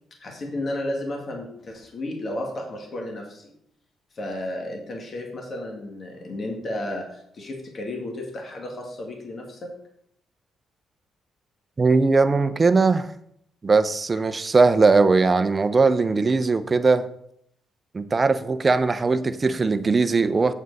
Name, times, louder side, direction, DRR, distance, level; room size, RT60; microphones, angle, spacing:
voice 1, 0.2-3.5 4.1-9.7, left 1 dB, 45° left, 0 dB, 2.1 m, -33 dB
voice 2, 11.8-13.1 13.6-17.0 17.9-20.5, right 4 dB, 30° right, 11 dB, 0.6 m, -19 dB
7.6 x 7.4 x 4.1 m, 0.72 s
cardioid pair, 90°, 0 cm